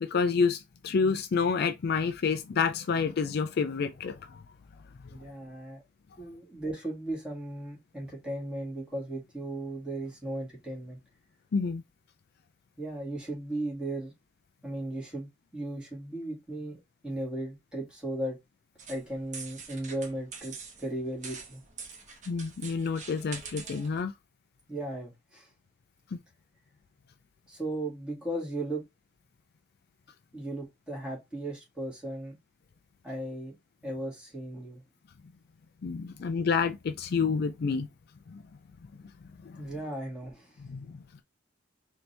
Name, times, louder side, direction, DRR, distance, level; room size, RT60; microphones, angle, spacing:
voice 1, 0.0-4.4 5.0-5.2 11.5-11.8 22.3-24.1 26.1-26.2 35.8-37.9 38.3-38.4 39.4-39.7 40.6-41.2, left 5 dB, 55° left, 0.4 m, -29 dB
voice 2, 5.1-5.8 6.2-11.0 12.8-14.1 14.6-18.4 18.9-21.6 24.7-25.5 27.5-28.8 30.3-32.3 33.0-33.6 33.8-34.8 39.6-40.6, right 1 dB, 5° right, 2.1 m, -36 dB
sound 1, 18.8-24.0, right 5 dB, 40° right, 1.1 m, -45 dB
4.3 x 2.8 x 3.3 m
head